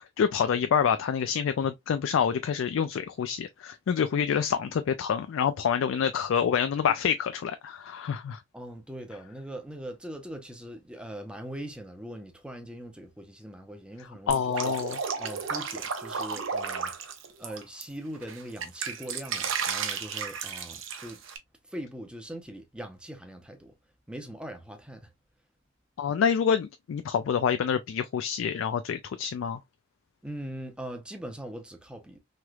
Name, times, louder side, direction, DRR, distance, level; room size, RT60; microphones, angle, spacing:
voice 1, 0.2-8.4 14.3-15.0 26.0-29.6, left 7 dB, 70° left, 0.3 m, -27 dB
voice 2, 8.5-14.7 15.2-17.1 17.4-21.2 21.7-23.7 24.1-25.1 30.2-32.2, right 1 dB, 5° right, 0.6 m, -41 dB
Drip, 14.3-17.8 18.2-21.4, right 6 dB, 75° right, 0.7 m, -33 dB
3.2 x 2.9 x 2.2 m
head